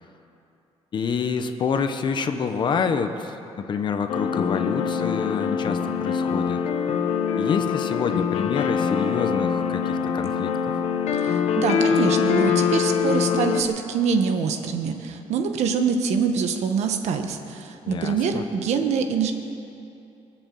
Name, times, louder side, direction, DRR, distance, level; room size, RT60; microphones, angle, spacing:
voice 1, 0.9-6.6 7.4-10.8 17.8-18.4, left 6 dB, 45° left, 7 dB, 1.0 m, -27 dB
sound 1, 4.1-13.6, left 6 dB, 85° left, 1.3 m, -24 dB
voice 2, 11.1-19.3, right 6 dB, 80° right, 5 dB, 1.4 m, -25 dB
23.5 x 7.9 x 7.8 m, 2.7 s
cardioid pair, 150°, 11 cm